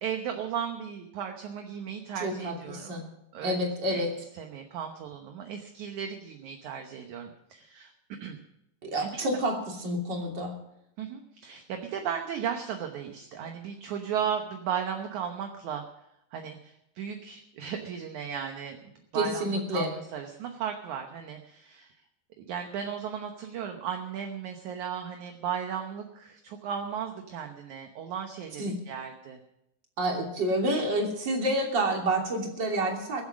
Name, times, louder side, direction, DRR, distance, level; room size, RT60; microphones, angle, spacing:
voice 1, 0.0-3.0 3.3-3.6 3.9-4.1 4.3-7.9 8.2-8.4 9.0-9.4 11.0-15.8 16.3-21.9 22.4-29.4, right 8 dB, 65° right, 4 dB, 2.0 m, -35 dB
voice 2, 2.2-3.1 3.4-4.1 8.8-10.5 19.1-19.9 28.6-28.8 30.0-33.2, right 1 dB, 30° right, 0 dB, 3.1 m, -29 dB
22.5 x 8.1 x 6.3 m, 0.81 s
omnidirectional pair, 4.5 m